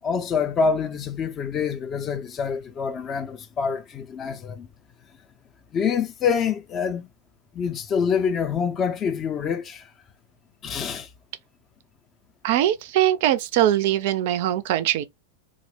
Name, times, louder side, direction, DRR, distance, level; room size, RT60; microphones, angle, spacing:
voice 1, 0.0-4.7 5.7-7.1 7.5-9.9 10.6-11.1, left 6 dB, 25° left, 0.4 m, -26 dB
voice 2, 12.4-15.0, right 12 dB, 50° right, 0.4 m, -21 dB
2.5 x 2.0 x 3.2 m
figure-of-eight pair, 90°, 0 cm